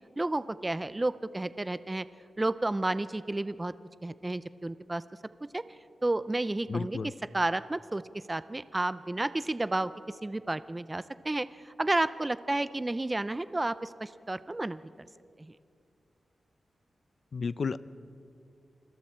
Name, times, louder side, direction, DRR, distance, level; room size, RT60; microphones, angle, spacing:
voice 1, 0.2-2.0 2.4-3.7 4.0-5.0 5.5-5.6 6.0-7.0 7.3-8.0 8.3-9.9 10.2-15.1 15.4-15.5, right 2 dB, 15° right, 15 dB, 0.4 m, -31 dB
voice 2, 6.7-7.1 17.3-17.8, left 5 dB, 50° left, 16 dB, 0.5 m, -32 dB
29.0 x 21.0 x 4.4 m, 2.5 s
wide cardioid pair, 165°, 0 cm